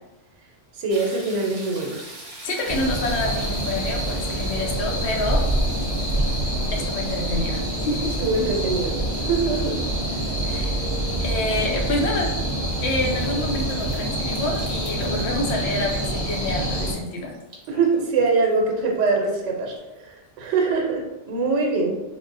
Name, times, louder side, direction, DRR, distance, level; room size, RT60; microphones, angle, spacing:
voice 1, 0.7-2.0 8.2-9.8 10.1-10.3 17.7-22.0, right 3 dB, 90° right, 1 dB, 0.9 m, -23 dB
sound 1, 0.9-20.0 20.4-20.5, right 1 dB, 60° right, 0.8 m, -46 dB
Laughter, 2.2-3.5 4.9-5.4 6.6-7.0 8.6-9.2 11.7-12.2 13.1-13.5 15.8-16.3 17.7-18.4 19.8-19.9, left 1 dB, 85° left, 1.3 m, -44 dB
voice 2, 2.4-5.4 6.7-8.2 10.4-10.8 11.2-12.3 12.8-17.3, left 2 dB, 70° left, 1 dB, 0.8 m, -27 dB
sound 2, 2.7-16.9, right 1 dB, 15° left, 0.5 m, -26 dB
3.4 x 2.1 x 2.5 m, 1.0 s
omnidirectional pair, 1.2 m